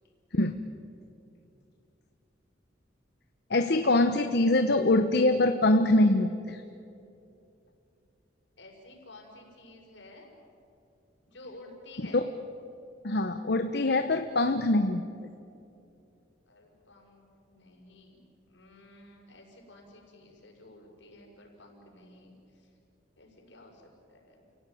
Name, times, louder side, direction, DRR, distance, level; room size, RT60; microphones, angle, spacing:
voice 1, 3.5-6.6 12.1-12.2 13.0-15.0, left 2 dB, 60° left, 7 dB, 1.0 m, -24 dB
voice 2, 8.6-10.3 11.3-12.2 16.5-18.2 18.5-22.3 23.2-24.4, left 2 dB, 80° left, 0 dB, 6.2 m, -52 dB
30.0 x 17.5 x 9.3 m, 2.7 s
head